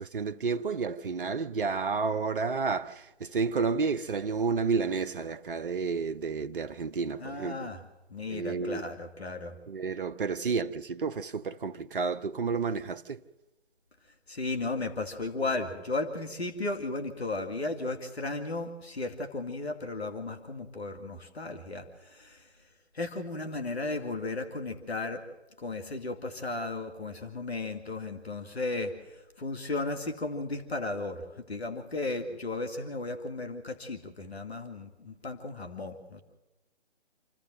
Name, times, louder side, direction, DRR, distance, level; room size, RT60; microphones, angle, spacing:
voice 1, 0.0-7.7 8.3-8.8 9.7-13.2, right 4 dB, 55° right, 0.9 m, -31 dB
voice 2, 7.2-7.8 8.1-9.6 14.3-22.5 22.9-25.2 25.6-36.2, left 2 dB, 70° left, 2.6 m, -35 dB
28.5 x 14.0 x 7.6 m
figure-of-eight pair, 150°, 33 cm